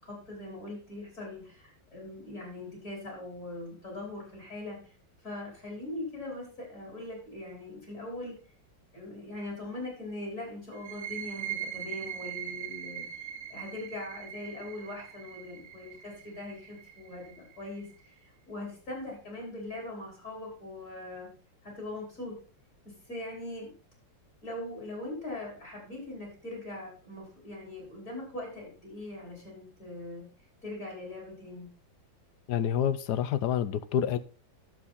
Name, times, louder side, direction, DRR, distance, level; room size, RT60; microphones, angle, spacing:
voice 1, 0.0-4.8 5.2-8.3 8.9-13.0 13.5-17.9 18.5-21.3 21.6-22.4 22.9-23.7 24.4-30.3 30.6-31.7, left 2 dB, 40° left, 5.5 m, -41 dB
sound 1, 10.7-18.1, right 10 dB, 45° right, 1.8 m, -41 dB
voice 2, 32.5-34.2, left 9 dB, 70° left, 1.2 m, -28 dB
11.0 x 7.7 x 4.2 m
omnidirectional pair, 2.0 m